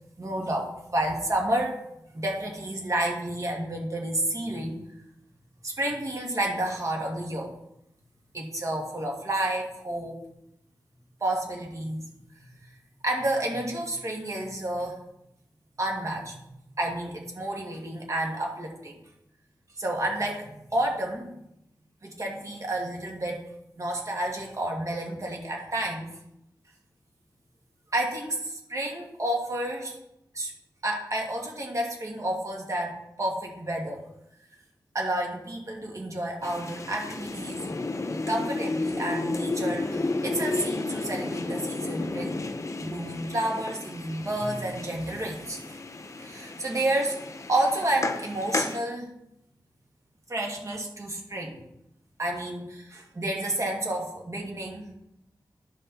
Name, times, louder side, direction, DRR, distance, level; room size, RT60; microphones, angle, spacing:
voice 1, 0.2-1.8 2.1-4.8 5.6-7.5 8.3-10.1 11.2-12.0 12.4-12.5 13.0-15.0 15.8-19.0 19.8-21.3 22.0-23.4 23.8-26.1 27.9-30.0 30.3-30.5 30.8-34.0 34.9-37.6 38.3-42.4 42.8-45.8 46.2-47.2 47.5-49.1 50.3-51.6 52.2-54.8, right 1 dB, 45° right, 0 dB, 2.1 m, -30 dB
sound 1, 36.4-48.8, left 3 dB, 40° left, 0.8 m, -32 dB
11.5 x 5.4 x 4.2 m, 0.84 s
wide cardioid pair, 95°, 8 cm